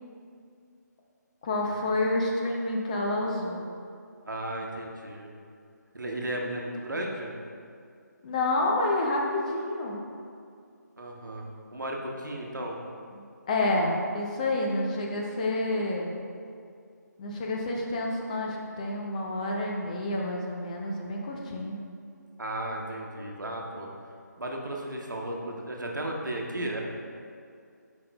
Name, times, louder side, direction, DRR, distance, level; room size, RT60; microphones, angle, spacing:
voice 1, 1.4-3.6 8.2-10.0 13.1-16.1 17.2-21.8, left 2 dB, 25° left, -1 dB, 0.5 m, -29 dB
voice 2, 4.2-5.3 5.9-7.3 11.0-11.5 11.7-12.8 22.4-23.9 24.4-26.8, right 1 dB, 85° right, 0 dB, 1.0 m, -34 dB
8.5 x 5.2 x 2.2 m, 2.3 s
figure-of-eight pair, 155°, 10 cm